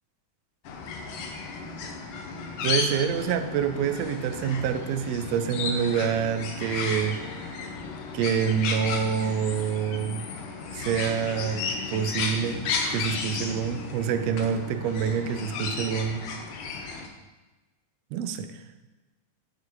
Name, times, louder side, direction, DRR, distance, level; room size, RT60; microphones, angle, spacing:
sound 1, 0.6-17.1, left 4 dB, 90° left, 2.5 m, -33 dB
voice 1, 2.6-7.2 8.1-10.3 10.7-16.2 16.8-17.0 18.1-18.6, right 8 dB, 90° right, 9 dB, 1.4 m, -27 dB
11.0 x 7.3 x 3.1 m, 1.2 s
omnidirectional pair, 3.6 m